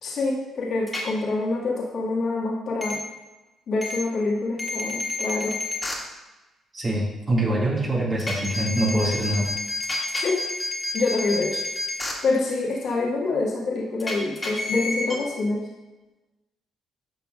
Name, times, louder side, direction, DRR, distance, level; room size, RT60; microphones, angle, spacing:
voice 1, 0.0-3.0 3.7-5.6 10.1-10.4 10.9-11.6 12.2-15.6, left 3 dB, 65° left, -4 dB, 2.2 m, -26 dB
sound 1, 0.9-1.0 2.8-3.0 3.8-4.0 4.6-5.9 8.2-12.1 14.0-15.1, left 2 dB, 20° left, 2.1 m, -29 dB
voice 2, 6.7-9.5, right 1 dB, 35° right, -5 dB, 2.3 m, -24 dB
10.5 x 5.6 x 2.6 m, 1.1 s
supercardioid pair, 65°, 0 cm